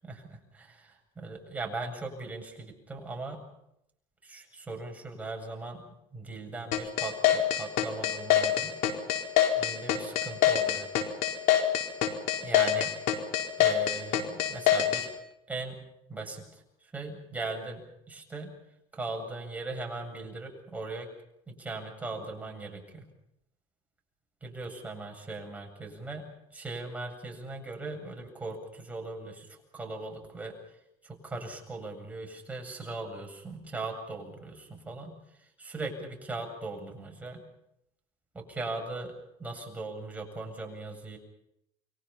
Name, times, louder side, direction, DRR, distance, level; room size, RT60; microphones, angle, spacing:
voice 1, 0.6-3.4 4.2-5.9 6.1-8.7 9.6-10.9 12.4-13.0 13.6-15.1 15.5-18.5 18.9-21.1 21.5-23.1 24.4-30.8 31.0-37.4 38.3-41.2, right 3 dB, 10° right, 1 dB, 7.9 m, -39 dB
sound 1, 6.7-15.1, left 11 dB, 75° left, 4.2 m, -24 dB
29.5 x 24.0 x 5.7 m, 0.79 s
cardioid pair, 120°, 12 cm